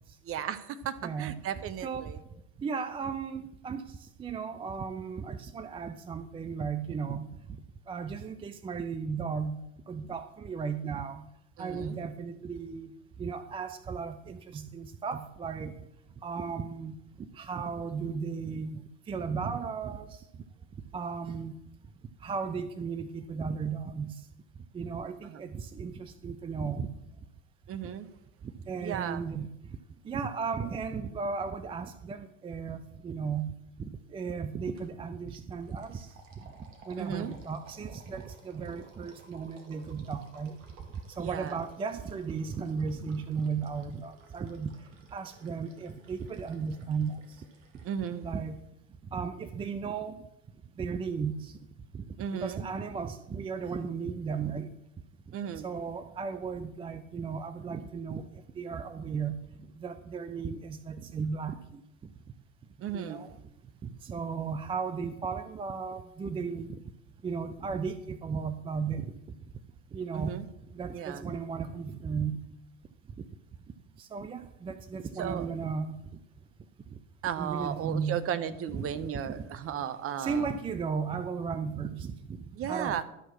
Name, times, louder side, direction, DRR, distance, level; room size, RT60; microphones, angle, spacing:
voice 1, 0.2-2.2 11.6-12.0 25.2-25.4 27.7-28.1 28.8-29.3 37.0-37.3 41.2-41.6 47.8-48.3 52.2-52.6 55.3-55.7 62.8-63.3 70.1-70.4 70.9-71.3 75.2-75.5 77.2-80.5 82.6-83.0, right 9 dB, 35° right, 13 dB, 0.9 m, -35 dB
voice 2, 1.0-1.4 1.8-2.1 2.6-7.3 7.9-11.2 11.6-12.9 13.2-15.7 16.2-17.0 17.3-20.2 20.9-21.6 22.2-24.2 24.7-26.9 28.7-29.5 30.1-33.5 33.8-36.1 36.9-40.6 41.2-44.7 45.1-47.2 48.2-48.6 49.1-50.2 50.8-51.6 51.9-52.1 52.4-54.7 55.6-58.3 58.6-59.4 59.8-61.8 62.9-63.3 63.8-66.8 67.2-69.2 69.9-70.4 70.7-72.4 74.0-76.0 77.4-78.2 78.7-78.9 79.3-79.4 80.2-82.4 82.6-83.0, right 5 dB, 15° right, 11 dB, 0.4 m, -35 dB
sound 1, 34.8-35.0 35.3-48.1, right 3 dB, 65° right, 2.2 m, -57 dB
12.0 x 6.2 x 6.1 m, 0.83 s
hypercardioid pair, 80°, 41 cm